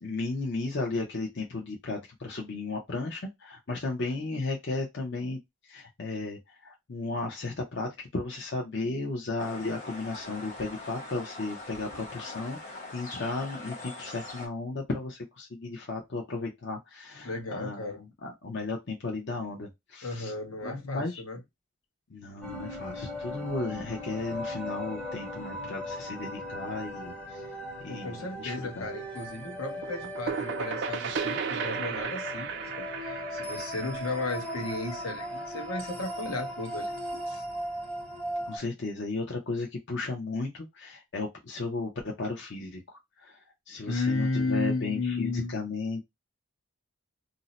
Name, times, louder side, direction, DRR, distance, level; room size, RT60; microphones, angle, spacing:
voice 1, 0.0-5.4 5.7-12.6 12.9-17.9 18.2-20.3 20.6-21.2 22.1-27.4 27.8-28.9 38.5-43.4 43.7-46.0, left 3 dB, 55° left, 0.6 m, -34 dB
sound 1, 9.4-14.5, left 2 dB, 35° left, 1.1 m, -42 dB
voice 2, 17.2-18.0 20.0-21.4 27.9-37.0 37.3-37.4 43.9-45.6, left 3 dB, 80° left, 0.9 m, -34 dB
sound 2, 22.4-38.6, equal, 5° left, 0.6 m, -38 dB
sound 3, 29.8-35.4, right 6 dB, 55° right, 0.4 m, -35 dB
2.6 x 2.0 x 3.9 m
head